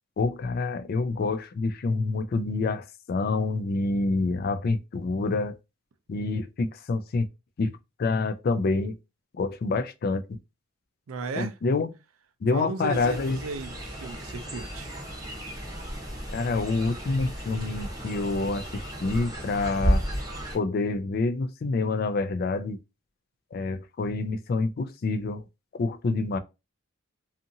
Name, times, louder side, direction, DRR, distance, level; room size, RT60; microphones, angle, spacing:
voice 1, 0.2-5.6 6.1-7.3 7.6-7.7 8.0-9.0 9.3-10.4 11.4-11.9 12.4-13.4 16.3-20.0 20.5-22.8 23.5-25.4 25.7-26.4, left 3 dB, 45° left, 0.3 m, -27 dB
voice 2, 11.1-11.5 12.5-14.9, right 4 dB, 70° right, 0.4 m, -35 dB
Fowl, 12.9-20.6, equal, 15° right, 0.7 m, -33 dB
2.7 x 2.5 x 2.6 m
head